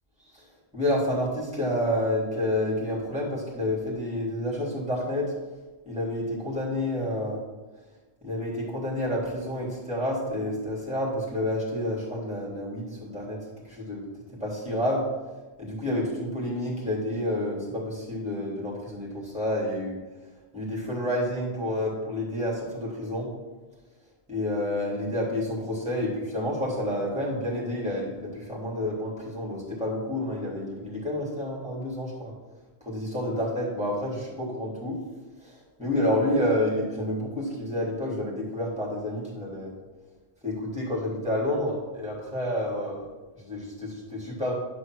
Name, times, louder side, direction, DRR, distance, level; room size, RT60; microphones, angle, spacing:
voice 1, 0.7-5.3 5.9-7.4 8.2-13.4 13.6-14.1 14.4-15.0 15.6-20.0 20.5-23.3 24.3-32.3 32.8-35.0 35.4-39.7 40.4-43.1 43.4-44.5, left 1 dB, 5° right, -6 dB, 3.6 m, -29 dB
11.0 x 5.5 x 6.3 m, 1.2 s
omnidirectional pair, 1.1 m